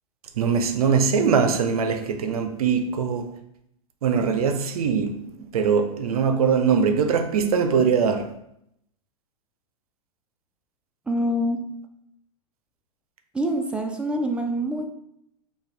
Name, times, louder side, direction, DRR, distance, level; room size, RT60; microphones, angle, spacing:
voice 1, 0.4-3.3 4.0-5.2 5.5-8.3, right 6 dB, 80° right, 0.5 m, -22 dB
voice 2, 11.1-11.6 13.3-14.8, equal, 5° right, 0.4 m, -25 dB
4.6 x 2.3 x 3.4 m
hypercardioid pair, 120°, 19 cm